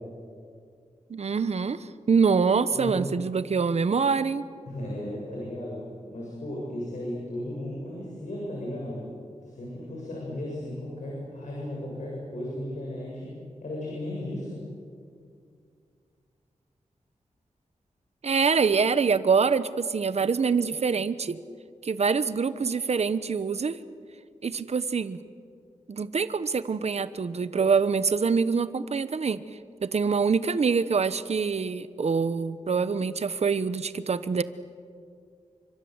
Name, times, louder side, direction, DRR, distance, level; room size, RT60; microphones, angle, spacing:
voice 1, 1.1-4.5 18.2-21.4 21.8-23.8 24.4-25.2 25.9-29.4 29.8-34.4, right 5 dB, 60° right, 14 dB, 1.0 m, -25 dB
voice 2, 2.7-3.0 4.7-5.8 6.1-9.1 9.4-13.3 13.6-14.6, left 1 dB, 80° left, -4 dB, 7.5 m, -35 dB
29.0 x 25.0 x 8.1 m, 2.3 s
wide cardioid pair, 115°, 12 cm